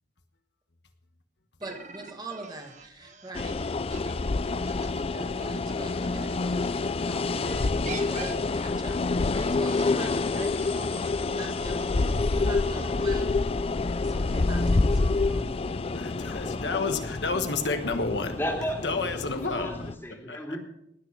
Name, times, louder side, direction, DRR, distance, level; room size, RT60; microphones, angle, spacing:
voice 1, 1.6-3.8 5.1-9.0 9.6-13.3 14.0-15.5, right 2 dB, 20° right, 3 dB, 1.7 m, -42 dB
sound 1, 1.6-6.8 7.4-13.3, right 5 dB, 40° right, 1.2 m, -46 dB
sound 2, 3.3-19.9, left 3 dB, 30° left, 0.4 m, -28 dB
voice 2, 15.9-18.3 18.8-19.7 20.3-20.4, left 3 dB, 70° left, 6 dB, 1.3 m, -30 dB
voice 3, 18.4-18.8 19.4-20.6, equal, 15° left, 1 dB, 2.6 m, -33 dB
19.0 x 6.7 x 6.1 m, 0.78 s
head